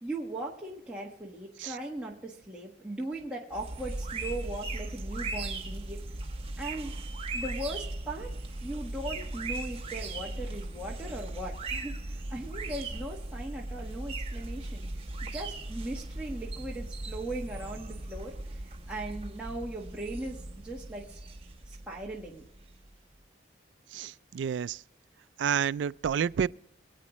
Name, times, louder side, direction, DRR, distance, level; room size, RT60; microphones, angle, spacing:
voice 1, 0.0-6.0 6.6-6.9 7.3-8.3 8.6-14.9 15.2-18.4 18.9-21.2 21.7-22.5, right 1 dB, 5° right, 1.4 m, -38 dB
sound 1, 3.5-22.9, right 2 dB, 30° right, 1.0 m, -38 dB
voice 2, 23.9-24.8 25.4-26.5, right 7 dB, 75° right, 0.3 m, -29 dB
23.0 x 8.5 x 3.1 m
head